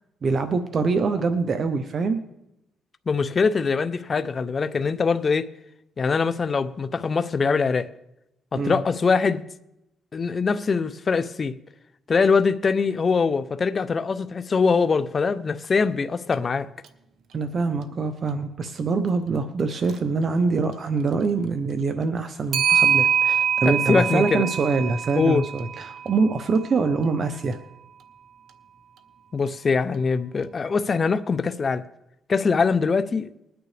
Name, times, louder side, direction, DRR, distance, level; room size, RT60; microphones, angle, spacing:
voice 1, 0.2-2.2 8.5-8.8 17.3-27.6, right 4 dB, 50° right, 0.9 m, -24 dB
voice 2, 3.1-5.5 6.0-7.9 8.5-9.4 10.1-11.5 12.1-16.7 23.6-24.5 25.1-25.4 29.3-31.9 32.3-33.3, left 5 dB, 40° left, 0.7 m, -23 dB
Clock, 16.3-16.4 16.8-16.9 19.7-20.0 22.5-26.8, right 8 dB, 70° right, 1.0 m, -24 dB
20.5 x 9.2 x 3.3 m
cardioid pair, 90°, 0 cm